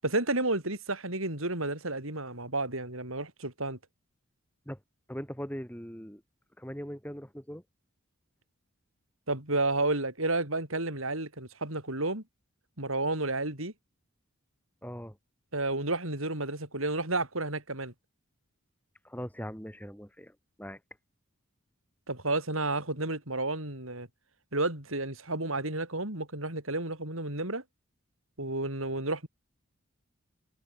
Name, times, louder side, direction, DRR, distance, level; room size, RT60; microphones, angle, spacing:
voice 1, 0.0-3.8 9.3-12.2 12.8-13.7 15.5-17.9 22.1-24.1 24.5-27.6 28.4-29.3, right 2 dB, 80° right, 7.6 m, -31 dB
voice 2, 5.1-6.2 6.6-7.6 14.8-15.2 19.0-20.8, equal, 10° left, 4.7 m, -40 dB
head